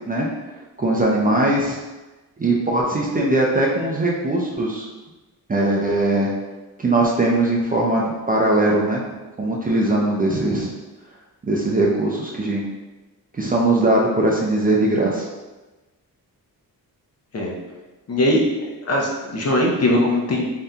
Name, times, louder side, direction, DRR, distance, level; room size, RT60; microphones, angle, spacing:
voice 1, 0.8-1.8 2.4-4.9 5.5-6.3 6.8-9.0 9.4-10.7 11.4-12.6 13.4-15.3, right 2 dB, 25° right, -3 dB, 0.4 m, -20 dB
voice 2, 18.1-20.5, left 1 dB, 40° left, -1 dB, 0.6 m, -20 dB
2.7 x 2.2 x 3.6 m, 1.1 s
wide cardioid pair, 110°, 38 cm